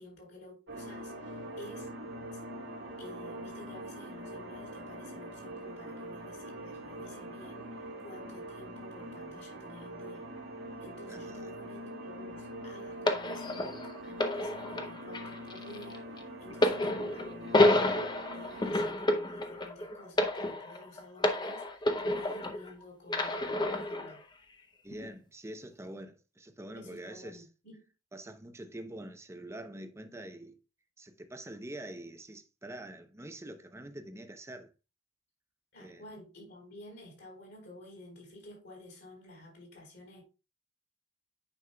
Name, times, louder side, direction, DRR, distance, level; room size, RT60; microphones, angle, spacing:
voice 1, 0.0-1.9 2.3-2.4 3.0-10.3 10.8-24.2 26.7-27.9 35.7-40.2, left 1 dB, 60° left, 4.4 m, -51 dB
sound 1, 0.7-18.7, right 1 dB, 85° right, 2.2 m, -43 dB
voice 2, 11.1-11.5 24.8-27.4 28.1-30.6 31.0-34.7 35.8-36.0, right 1 dB, 15° right, 0.7 m, -45 dB
sound 2, 13.1-22.7 23.1-24.1 24.9-25.1, left 1 dB, 25° left, 0.7 m, -30 dB
9.4 x 5.4 x 2.2 m
head